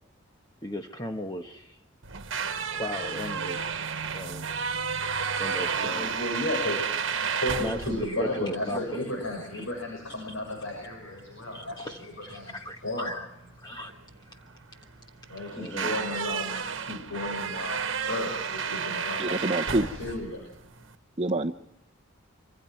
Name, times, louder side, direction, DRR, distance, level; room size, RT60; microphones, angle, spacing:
voice 1, 0.6-1.8 2.7-3.7 4.1-4.5 5.4-6.1 7.2-9.1 9.5-9.6 11.5-13.3 13.6-13.9 14.3-14.4 15.5-16.0 16.5-16.8 20.1-20.2, equal, 20° left, 4 dB, 1.2 m, -37 dB
sound 1, 2.0-20.9, right 6 dB, 65° right, 1.3 m, -32 dB
voice 2, 5.7-7.1 7.4-12.6 12.8-13.1 15.3-20.5, left 1 dB, 70° left, 1 dB, 6.7 m, -34 dB
voice 3, 19.2-19.9 21.2-21.5, right 2 dB, 30° right, 3 dB, 0.8 m, -26 dB
25.5 x 25.5 x 4.5 m, 0.84 s
head